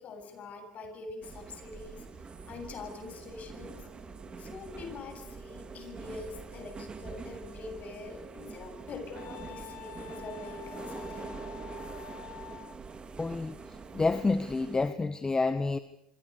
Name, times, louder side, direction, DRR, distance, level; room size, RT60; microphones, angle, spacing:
voice 1, 0.0-3.8 4.4-11.5, left 4 dB, 45° left, 7 dB, 7.9 m, -44 dB
sound 1, 1.2-14.9, right 4 dB, 30° right, 3.1 m, -44 dB
Wind instrument woodwind instrument, 9.1-12.8, left 13 dB, 65° left, 3.2 m, -47 dB
voice 2, 13.2-13.5 13.9-15.8, left 3 dB, 20° left, 11 dB, 1.6 m, -28 dB
28.0 x 25.0 x 6.9 m, 0.72 s
hypercardioid pair, 75°, 3 cm